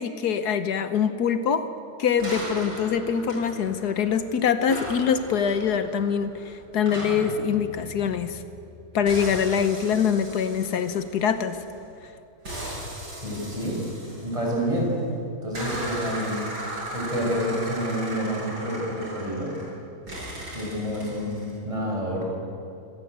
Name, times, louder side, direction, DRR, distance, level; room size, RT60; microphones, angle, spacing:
voice 1, 0.0-1.7 2.0-8.4 8.9-11.6, left 7 dB, 75° left, 10 dB, 1.5 m, -24 dB
sound 1, 2.2-4.2 4.7-8.7 9.1-11.8 12.4-14.9 15.5-19.7 20.1-21.5, right 1 dB, 80° right, 8.5 m, -37 dB
voice 2, 13.2-13.8 14.2-14.9 15.4-16.5 16.9-19.5 20.5-22.3, equal, 20° right, -2 dB, 6.6 m, -28 dB
26.0 x 17.5 x 8.1 m, 2.7 s
omnidirectional pair, 1.7 m